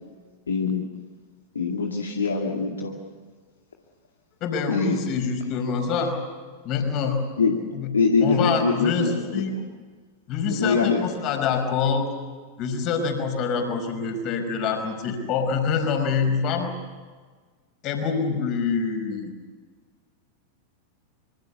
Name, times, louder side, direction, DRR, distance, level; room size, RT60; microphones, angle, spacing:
voice 1, 0.5-0.9 1.5-2.9 4.7-5.0 7.4-7.6 7.9-9.6 10.5-11.1, left 4 dB, 70° left, 1 dB, 2.2 m, -23 dB
voice 2, 4.4-6.2 6.6-7.2 7.7-9.5 10.3-12.1 12.6-16.7 17.8-19.3, left 5 dB, 40° left, 6 dB, 5.3 m, -25 dB
26.0 x 25.0 x 7.0 m, 1.5 s
figure-of-eight pair, 90°, 0 cm